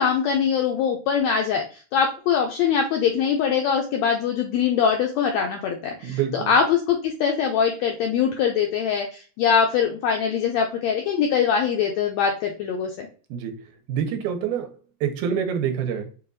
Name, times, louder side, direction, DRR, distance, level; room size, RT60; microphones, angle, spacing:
voice 1, 0.0-13.1, left 7 dB, 85° left, 1.5 m, -22 dB
voice 2, 6.0-6.5 13.3-13.5 13.9-14.7 15.0-16.1, right 8 dB, 85° right, 2.1 m, -26 dB
5.7 x 2.3 x 2.5 m
omnidirectional pair, 3.6 m